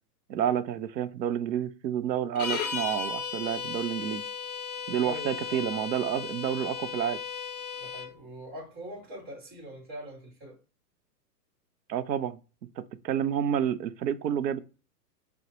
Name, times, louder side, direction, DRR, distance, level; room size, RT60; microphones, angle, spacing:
voice 1, 0.3-4.2 4.9-7.2 11.9-12.4 12.8-14.6, right 9 dB, 85° right, 0.6 m, -29 dB
sound 1, 2.3-8.1, left 6 dB, 30° left, 0.4 m, -35 dB
voice 2, 5.0-5.7 7.8-10.6, equal, 20° right, 2.2 m, -43 dB
5.5 x 2.2 x 2.9 m
hypercardioid pair, 140°, 49 cm